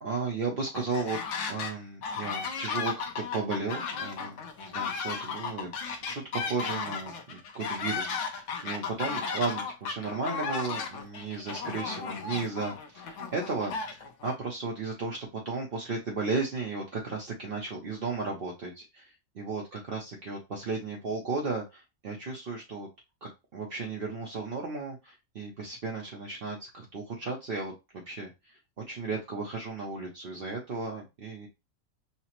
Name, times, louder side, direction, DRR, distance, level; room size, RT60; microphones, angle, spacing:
voice 1, 0.0-1.2 1.5-5.7 6.0-22.9 23.2-28.6 28.9-31.5, right 4 dB, 55° right, -1 dB, 0.9 m, -35 dB
sound 1, 0.7-1.7 2.0-14.3, left 5 dB, 70° left, 1.0 m, -35 dB
5.7 x 2.0 x 2.9 m, 0.24 s
omnidirectional pair, 1.3 m